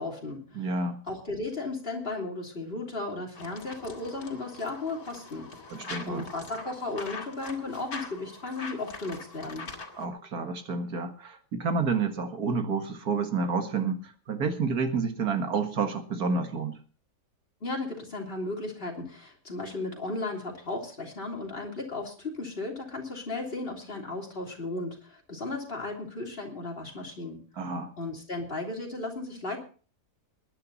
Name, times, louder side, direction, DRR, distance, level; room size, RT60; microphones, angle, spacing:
voice 1, 0.0-0.7 1.1-5.5 6.1-9.7 17.6-27.4 28.0-29.6, left 2 dB, 35° left, 0 dB, 3.5 m, -35 dB
voice 2, 0.5-1.0 5.7-6.3 10.0-16.8 27.6-27.9, right 4 dB, 75° right, 7 dB, 2.2 m, -29 dB
sound 1, 3.3-10.1, left 3 dB, 75° left, 2.7 m, -43 dB
21.0 x 10.5 x 4.1 m, 0.40 s
omnidirectional pair, 1.6 m